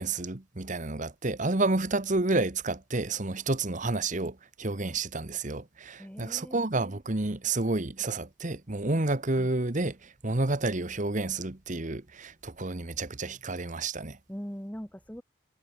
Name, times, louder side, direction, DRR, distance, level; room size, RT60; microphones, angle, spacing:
voice 1, 0.0-14.2, right 2 dB, 40° right, 1.2 m, -30 dB
voice 2, 6.0-6.7 8.9-9.1 14.3-15.2, equal, 5° left, 1.9 m, -41 dB
head